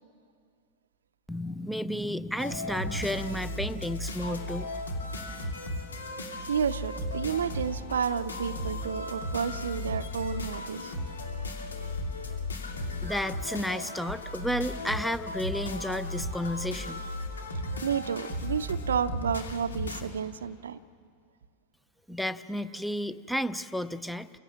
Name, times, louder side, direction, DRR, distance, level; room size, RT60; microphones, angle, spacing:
voice 1, 1.3-4.7 13.0-17.0 22.1-24.3, equal, ahead, 14 dB, 0.6 m, -32 dB
sound 1, 2.4-20.0, left 1 dB, 70° left, 2.4 m, -35 dB
voice 2, 6.5-10.9 17.8-20.8, right 7 dB, 65° right, 15 dB, 0.6 m, -31 dB
29.0 x 16.0 x 7.4 m, 2.3 s
figure-of-eight pair, 90°, 0 cm